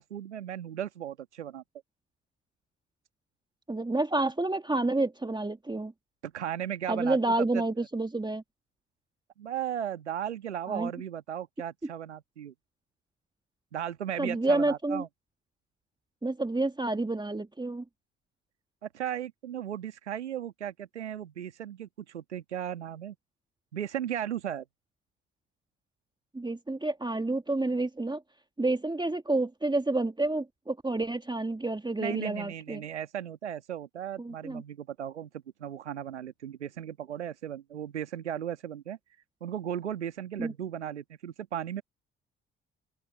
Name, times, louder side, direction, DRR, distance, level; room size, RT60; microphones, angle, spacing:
voice 1, 0.0-1.6 6.2-7.6 9.4-12.5 13.7-15.1 18.8-23.1 23.7-24.6 32.0-35.3 35.6-39.0 39.4-41.8, right 10 dB, 90° right, 1.4 m, -36 dB
voice 2, 3.7-5.9 6.9-8.4 10.7-10.9 14.2-15.0 16.2-17.8 26.3-28.2 28.6-32.8 34.2-34.6 40.4-40.5, right 2 dB, 15° right, 1.7 m, -29 dB
open air
figure-of-eight pair, 45°, 33 cm